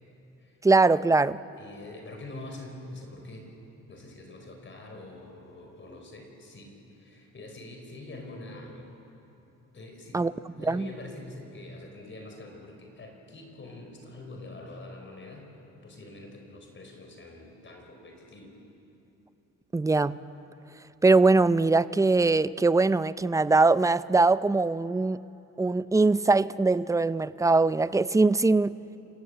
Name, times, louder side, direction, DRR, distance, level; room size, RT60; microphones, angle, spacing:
voice 1, 0.6-1.4 10.1-10.3 10.6-10.9 19.7-20.2 21.0-25.2 25.6-28.8, right 3 dB, 10° right, 0.5 m, -22 dB
voice 2, 1.6-3.5 3.9-8.9 9.7-18.5, left 2 dB, 40° left, 4.8 m, -45 dB
28.0 x 17.0 x 7.9 m
cardioid pair, 90°, 30 cm